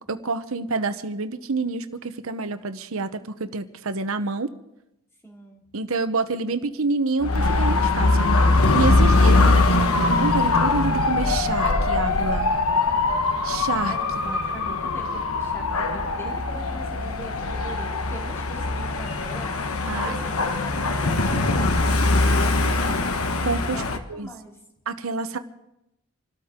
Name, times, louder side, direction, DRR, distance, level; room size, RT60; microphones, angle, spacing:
voice 1, 0.1-4.5 5.7-8.3 8.7-12.5 13.4-13.9 14.2-14.3 19.9-20.2 23.4-23.8 24.1-24.3 24.9-25.4, right 3 dB, 75° right, 10 dB, 0.9 m, -28 dB
voice 2, 5.2-5.6 13.8-20.3 20.6-23.0 23.7-24.6, right 1 dB, 10° left, 0 dB, 2.7 m, -42 dB
Dog / Motorcycle, 7.2-24.0, left 3 dB, 80° left, 1.3 m, -22 dB
27.0 x 13.5 x 3.7 m, 0.87 s
head